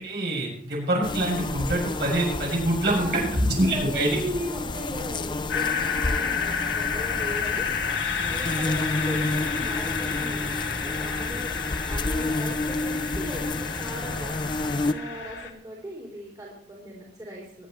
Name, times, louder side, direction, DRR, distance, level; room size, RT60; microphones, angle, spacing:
voice 1, 0.0-3.2 3.6-4.1, right 1 dB, 60° right, -4 dB, 7.1 m, -25 dB
sound 1, 1.0-14.9, left 2 dB, 25° left, 0.6 m, -30 dB
voice 2, 2.8-7.7 8.2-17.7, right 1 dB, 25° right, -5 dB, 3.3 m, -38 dB
sound 2, 5.5-15.5, left 6 dB, 85° left, 1.8 m, -31 dB
23.0 x 10.5 x 3.2 m, 0.66 s
head